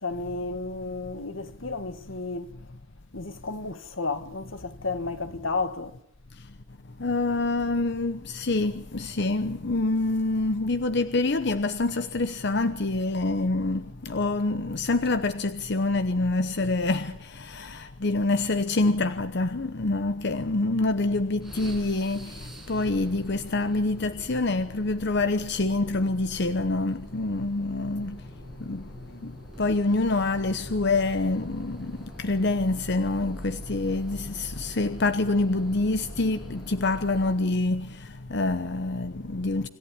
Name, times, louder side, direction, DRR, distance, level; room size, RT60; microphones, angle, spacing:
voice 1, 0.0-2.5 3.1-6.0, left 3 dB, 85° left, 1.8 m, -32 dB
voice 2, 7.0-28.2 28.6-28.8 29.2-29.3 29.6-39.7, left 2 dB, 60° left, 1.0 m, -26 dB
sound 1, 21.4-37.6, equal, ahead, 7.9 m, -44 dB
26.5 x 14.5 x 10.0 m
head